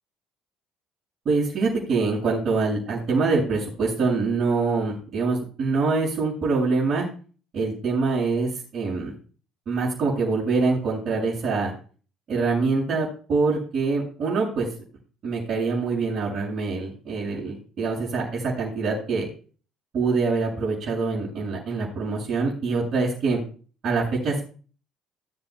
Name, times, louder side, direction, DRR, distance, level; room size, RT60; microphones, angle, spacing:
voice 1, 1.3-7.0 7.5-9.1 9.7-11.7 12.3-14.7 15.2-19.3 19.9-23.4 23.8-24.4, right 4 dB, 50° right, -9 dB, 7.3 m, -24 dB
20.0 x 8.5 x 2.4 m, 0.39 s
hypercardioid pair, 65°, 0 cm